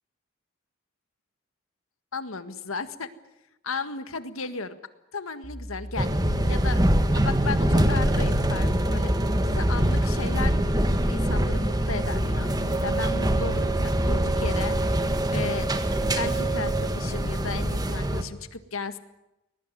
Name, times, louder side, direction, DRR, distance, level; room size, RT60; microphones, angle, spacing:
voice 1, 2.1-3.1 3.6-4.8 5.1-6.1 6.5-6.8 7.1-9.2 9.5-10.5 11.1-15.0 15.3-15.7 16.2-19.0, left 4 dB, 85° left, 11 dB, 1.8 m, -34 dB
sound 1, 5.4-16.9, equal, 55° right, 2.5 m, -35 dB
sound 2, 6.0-18.2, right 1 dB, 20° right, 1.6 m, -24 dB
21.5 x 20.0 x 9.3 m, 0.91 s
head